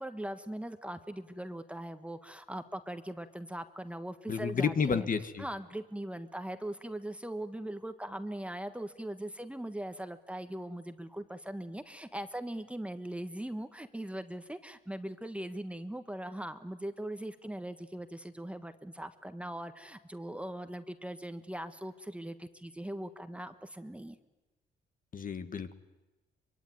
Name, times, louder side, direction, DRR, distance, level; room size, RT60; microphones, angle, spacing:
voice 1, 0.0-5.1 5.4-24.2, right 1 dB, 5° right, 9 dB, 1.5 m, -40 dB
voice 2, 4.3-5.4 25.1-25.7, left 6 dB, 45° left, 9 dB, 1.8 m, -31 dB
24.0 x 23.5 x 9.5 m, 1.1 s
cardioid pair, 90°, 20 cm